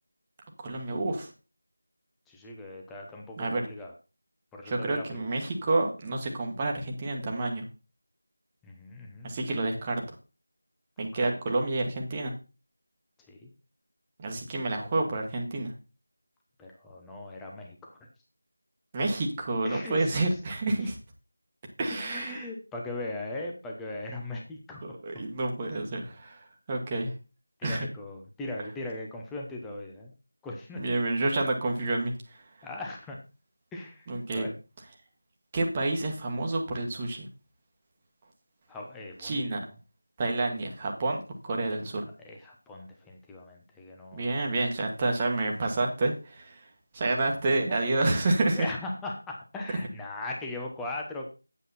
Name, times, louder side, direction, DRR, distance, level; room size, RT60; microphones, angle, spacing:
voice 1, 0.6-1.3 3.4-3.6 4.6-7.6 9.2-10.0 11.0-12.3 14.2-15.7 18.9-21.0 21.8-22.5 24.8-27.1 27.6-27.9 30.8-32.4 34.1-34.5 35.5-37.3 39.2-39.6 40.2-42.1 44.1-46.7 46.9-48.7, right 2 dB, 20° right, 1 dB, 1.5 m, -29 dB
voice 2, 2.3-3.9 4.5-5.0 8.6-9.3 11.2-11.4 13.3-13.5 16.6-18.1 19.6-20.2 21.9-25.0 27.6-30.1 30.4-30.8 32.6-33.2 33.7-34.1 34.3-34.5 38.7-39.4 42.2-44.2 48.5-51.3, left 2 dB, 5° left, -1 dB, 0.9 m, -39 dB
9.1 x 8.1 x 4.1 m, 0.32 s
figure-of-eight pair, 170°, 0 cm